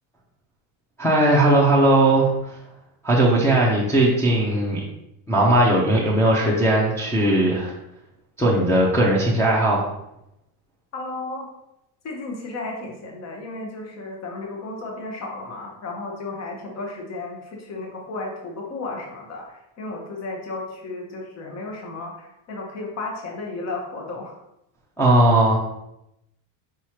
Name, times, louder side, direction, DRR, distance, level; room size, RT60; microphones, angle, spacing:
voice 1, 1.0-2.5 3.0-4.8 5.3-7.7 8.4-9.9 25.0-25.6, right 1 dB, 5° left, -6 dB, 0.6 m, -18 dB
voice 2, 10.9-11.5 12.0-24.4, left 2 dB, 30° left, 0 dB, 1.0 m, -34 dB
4.9 x 2.9 x 3.0 m, 0.85 s
supercardioid pair, 120°, 49 cm